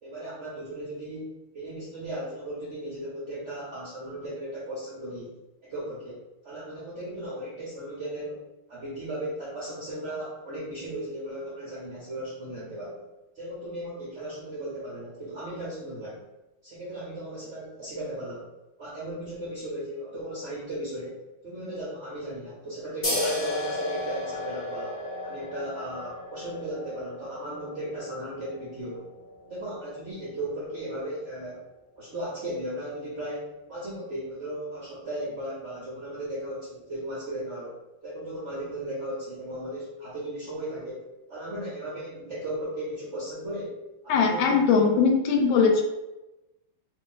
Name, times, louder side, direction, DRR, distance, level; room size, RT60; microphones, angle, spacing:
voice 1, 0.0-5.3 5.6-8.4 8.7-13.0 13.3-16.2 16.6-18.5 18.8-25.0 25.2-29.1 29.4-31.6 32.0-43.7 44.0-44.9, right 1 dB, 65° right, -7 dB, 0.7 m, -36 dB
sound 1, 23.0-30.2, left 1 dB, 40° left, 0.7 m, -34 dB
voice 2, 44.1-45.8, left 5 dB, 75° left, 2 dB, 1.3 m, -20 dB
3.1 x 2.4 x 3.8 m, 1.0 s
omnidirectional pair, 2.3 m